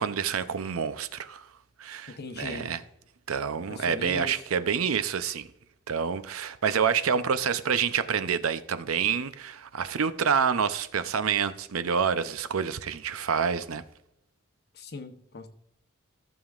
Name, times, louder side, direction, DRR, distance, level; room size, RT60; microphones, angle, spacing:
voice 1, 0.0-1.5 1.8-2.8 3.3-5.5 5.9-13.8, right 6 dB, 80° right, 0.6 m, -28 dB
voice 2, 2.1-2.7 3.7-4.3 14.7-15.5, left 3 dB, 50° left, 0.9 m, -39 dB
14.5 x 7.1 x 2.4 m
head